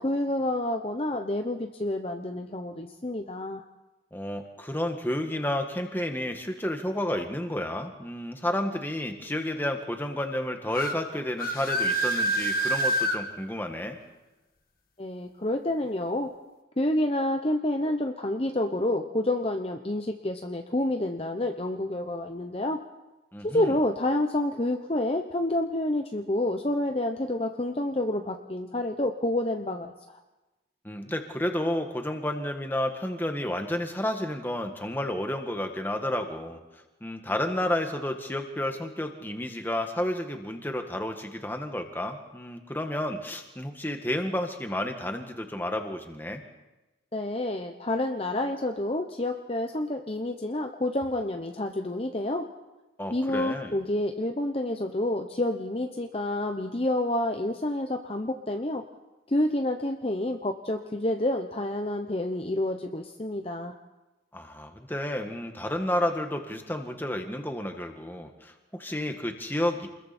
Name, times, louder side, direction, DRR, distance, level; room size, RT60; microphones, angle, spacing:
voice 1, 0.0-3.6 15.0-16.3 16.8-22.8 23.4-30.2 47.1-52.5 53.1-58.8 59.3-63.8, left 1 dB, 30° left, 5 dB, 0.9 m, -28 dB
voice 2, 4.1-14.0 23.3-23.7 30.8-46.4 53.0-53.8 64.3-69.9, left 1 dB, 10° left, 4 dB, 1.8 m, -31 dB
sound 1, 10.7-11.0 11.4-13.2, right 1 dB, 50° left, 2.0 m, -26 dB
28.5 x 21.5 x 4.4 m, 1.1 s
head